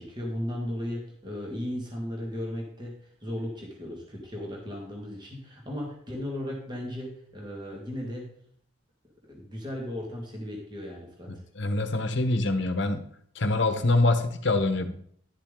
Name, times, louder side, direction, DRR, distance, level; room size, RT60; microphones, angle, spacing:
voice 1, 0.0-8.3 9.3-11.4, left 1 dB, 20° right, -1 dB, 1.9 m, -36 dB
voice 2, 11.5-13.0 13.3-14.9, left 2 dB, 60° left, 9 dB, 1.0 m, -25 dB
11.0 x 7.4 x 3.8 m, 0.63 s
head